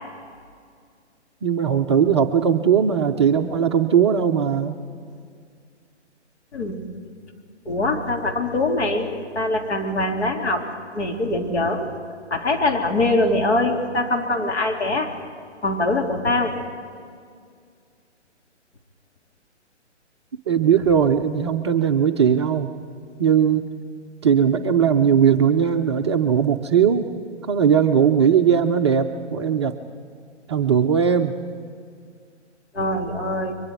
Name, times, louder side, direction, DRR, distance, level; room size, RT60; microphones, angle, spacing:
voice 1, 1.4-4.8 20.5-22.7 23.2-23.6 24.2-27.1 27.5-29.8 30.5-31.4, right 7 dB, 25° right, 5 dB, 0.5 m, -19 dB
voice 2, 7.6-9.1 9.3-10.7 10.9-11.9 12.3-15.1 15.6-16.6 32.7-33.5, left 2 dB, 65° left, 1 dB, 3.3 m, -23 dB
30.0 x 23.5 x 4.7 m, 2.2 s
figure-of-eight pair, 140°, 36 cm